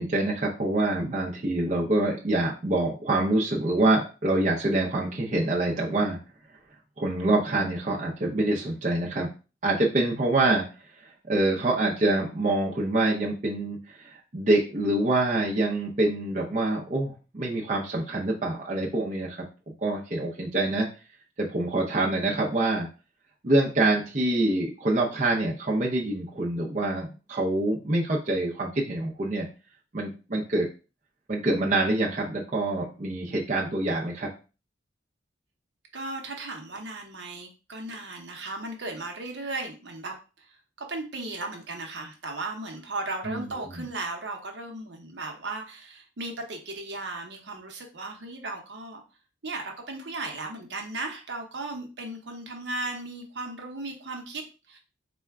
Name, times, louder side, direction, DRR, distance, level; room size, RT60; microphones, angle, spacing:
voice 1, 0.0-6.2 7.0-9.3 9.6-10.6 11.0-20.9 21.4-22.9 23.4-29.5 29.9-30.7 31.3-34.3 43.3-43.8, right 2 dB, 40° right, -2 dB, 0.6 m, -26 dB
voice 2, 35.9-49.0 49.4-54.8, right 2 dB, 70° right, 2 dB, 0.9 m, -36 dB
4.2 x 2.2 x 3.5 m, 0.32 s
head